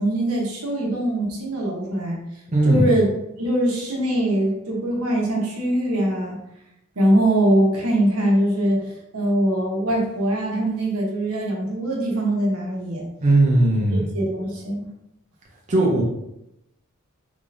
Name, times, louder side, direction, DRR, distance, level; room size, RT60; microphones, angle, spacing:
voice 1, 0.0-2.2 2.6-3.1 3.4-6.4 7.0-13.1 14.1-14.9, right 1 dB, 80° right, -2 dB, 1.0 m, -22 dB
voice 2, 2.5-2.9 13.2-14.1 15.7-16.0, right 2 dB, 35° right, -2 dB, 0.6 m, -18 dB
3.5 x 3.2 x 2.6 m, 0.84 s
head